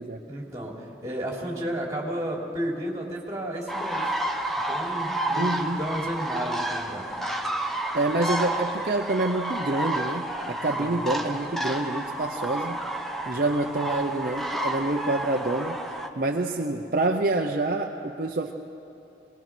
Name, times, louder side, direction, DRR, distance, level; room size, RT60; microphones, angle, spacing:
voice 1, 0.3-4.1 4.7-7.1 10.7-11.0, right 1 dB, 20° right, -2 dB, 3.1 m, -32 dB
sound 1, 3.7-16.1, right 1 dB, ahead, 0.9 m, -30 dB
voice 2, 5.3-5.8 7.9-12.8 13.3-15.8 16.2-18.5, right 2 dB, 50° right, 2 dB, 0.8 m, -27 dB
23.0 x 20.0 x 6.1 m, 2.9 s
head